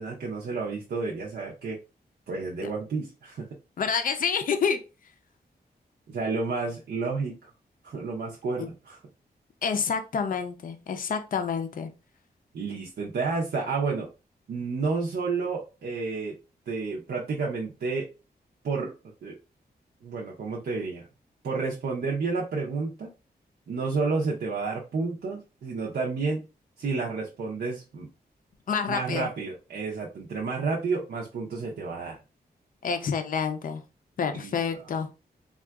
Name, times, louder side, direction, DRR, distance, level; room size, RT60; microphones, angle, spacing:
voice 1, 0.0-1.8 2.3-3.5 6.1-7.5 7.8-9.0 12.5-14.1 14.5-16.4 16.7-18.1 18.6-18.9 19.2-19.3 20.0-21.1 21.4-23.1 23.7-26.4 26.8-28.1 28.9-32.2 34.3-34.5, right 4 dB, 75° right, -2 dB, 0.6 m, -30 dB
voice 2, 3.8-4.8 8.6-8.7 9.6-11.9 28.7-29.3 32.8-33.8 34.2-35.1, left 6 dB, 55° left, 7 dB, 0.4 m, -28 dB
3.5 x 2.3 x 2.3 m, 0.30 s
wide cardioid pair, 120°, 17 cm